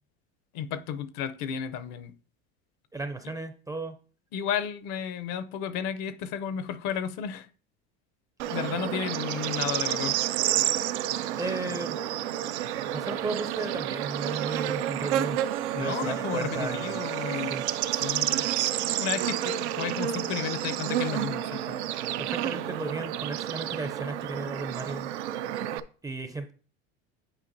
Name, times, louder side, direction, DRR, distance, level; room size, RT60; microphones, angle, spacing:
voice 1, 0.5-2.1 4.3-7.5 8.5-10.2 15.7-17.5 18.0-18.4 18.8-21.8, left 8 dB, 60° left, 12 dB, 0.6 m, -33 dB
voice 2, 2.9-3.9 11.4-12.0 12.9-15.4 15.7-17.0 17.5-17.6 22.2-25.1 26.0-26.5, right 3 dB, 10° right, 7 dB, 0.4 m, -35 dB
Bird / Insect, 8.4-25.8, right 12 dB, 90° right, 0.5 m, -30 dB
8.9 x 4.5 x 2.6 m, 0.40 s
supercardioid pair, 105°, 33 cm